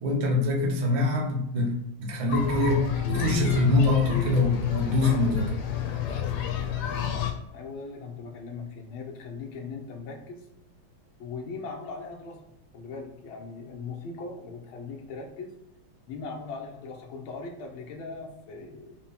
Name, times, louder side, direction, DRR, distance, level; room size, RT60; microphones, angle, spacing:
voice 1, 0.0-5.5, left 2 dB, 85° right, -1 dB, 0.4 m, -24 dB
sound 1, 2.3-7.3, left 9 dB, 90° left, 1.7 m, -29 dB
voice 2, 7.1-10.5 11.2-12.4 12.7-15.5 16.1-19.0, left 4 dB, 75° left, 1 dB, 1.6 m, -39 dB
5.9 x 2.2 x 4.0 m, 0.82 s
omnidirectional pair, 2.3 m